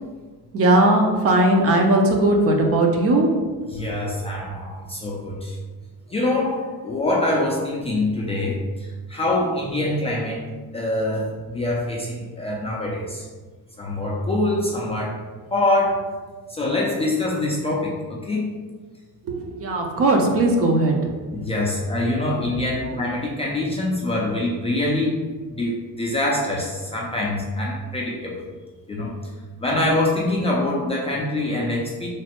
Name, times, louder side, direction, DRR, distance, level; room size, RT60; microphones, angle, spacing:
voice 1, 0.5-3.3 19.3-21.0, right 1 dB, 40° right, 1 dB, 0.5 m, -18 dB
voice 2, 3.7-5.6 6.1-10.4 10.7-13.3 13.8-15.2 15.5-16.1 16.5-18.5 21.3-25.2 25.5-28.4 28.9-29.1 29.6-32.1, left 1 dB, 15° left, -4 dB, 0.3 m, -24 dB
3.2 x 2.0 x 2.9 m, 1.4 s
cardioid pair, 110°, 36 cm